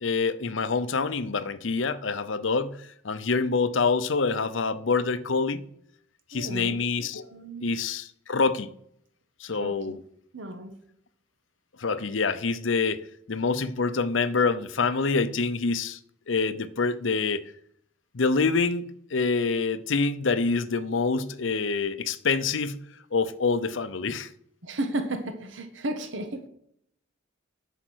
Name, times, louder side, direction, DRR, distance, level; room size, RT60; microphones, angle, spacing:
voice 1, 0.0-5.6 6.3-7.2 7.6-8.7 9.4-10.0 11.8-16.0 16.3-17.5 18.1-22.8 23.1-24.3, left 4 dB, 75° left, 0.7 m, -26 dB
voice 2, 6.3-6.8 7.2-7.7 9.5-9.8 10.3-10.7 24.6-26.4, right 1 dB, 80° right, 1.3 m, -33 dB
10.0 x 5.9 x 6.3 m
head